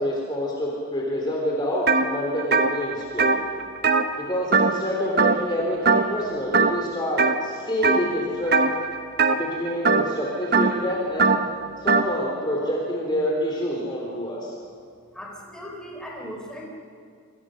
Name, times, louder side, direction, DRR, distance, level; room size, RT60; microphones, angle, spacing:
voice 1, 0.0-3.5 4.2-8.6 9.3-11.4 11.8-14.5, equal, 20° left, -2 dB, 3.5 m, -27 dB
sound 1, 1.9-2.1 2.4-4.9 5.2-5.6 5.9-6.2 6.5-7.4 7.8-8.1 8.5-12.1, right 4 dB, 45° right, 1.1 m, -21 dB
voice 2, 15.1-16.7, equal, 5° left, -2 dB, 4.3 m, -38 dB
27.0 x 24.0 x 6.5 m, 2.2 s
head